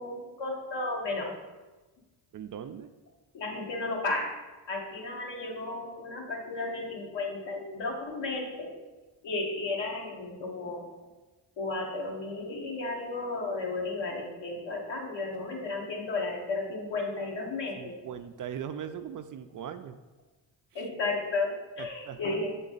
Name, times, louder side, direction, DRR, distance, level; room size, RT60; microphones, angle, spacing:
voice 1, 0.0-1.3 3.3-4.3 4.7-8.7 9.2-10.9 11.6-18.0 20.7-22.6, left 3 dB, 70° left, -1 dB, 1.7 m, -33 dB
voice 2, 2.3-2.9 17.8-20.0 20.7-20.9 21.8-22.2, right 8 dB, 45° right, 9 dB, 0.4 m, -40 dB
7.3 x 3.8 x 4.0 m, 1.2 s
cardioid pair, 75°, 45 cm